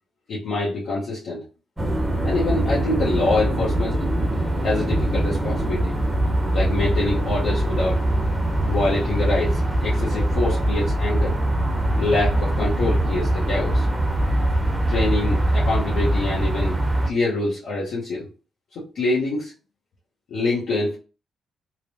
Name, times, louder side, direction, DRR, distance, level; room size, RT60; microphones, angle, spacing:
voice 1, 0.3-1.4 2.2-4.0 4.6-5.9 6.5-8.0 8.7-11.4 12.0-13.9 14.9-16.8 17.1-18.3 18.7-19.5 20.3-21.0, left 2 dB, 65° left, -7 dB, 0.8 m, -25 dB
sound 1, 1.8-17.1, right 1 dB, 15° right, 0.6 m, -22 dB
2.9 x 2.0 x 2.6 m, 0.34 s
hypercardioid pair, 45°, 0 cm